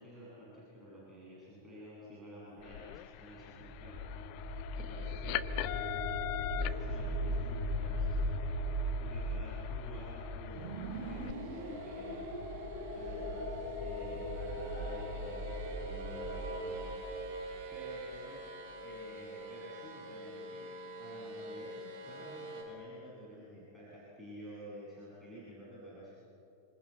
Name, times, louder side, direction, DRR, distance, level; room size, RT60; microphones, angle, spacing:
voice 1, 0.0-4.5 4.8-6.1 6.6-8.4 9.0-12.3 12.9-17.2 17.7-18.4 18.8-20.7 21.0-26.1, equal, 5° right, -9 dB, 7.9 m, -50 dB
sound 1, 2.6-11.3, left 15 dB, 45° left, 0.8 m, -43 dB
sound 2, 3.3-18.1, left 1 dB, 65° left, 7.4 m, -39 dB
sound 3, 10.5-22.6, right 2 dB, 40° right, 8.0 m, -44 dB
27.0 x 26.0 x 8.0 m, 2.7 s
figure-of-eight pair, 90°, 0 cm